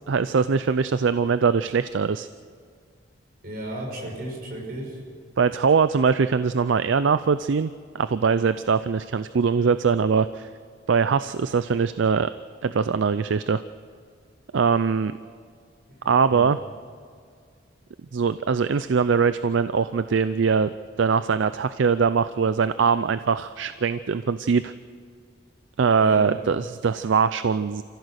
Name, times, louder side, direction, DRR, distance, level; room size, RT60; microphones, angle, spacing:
voice 1, 0.1-2.3 5.4-10.5 10.9-12.3 12.6-13.6 14.5-15.1 16.0-16.6 18.1-20.7 21.0-24.7 25.8-27.8, right 5 dB, 70° right, 13 dB, 0.4 m, -22 dB
voice 2, 3.4-5.0 16.3-16.4 26.0-26.4, right 1 dB, 50° right, -1 dB, 5.8 m, -34 dB
29.0 x 15.0 x 6.4 m, 2.1 s
head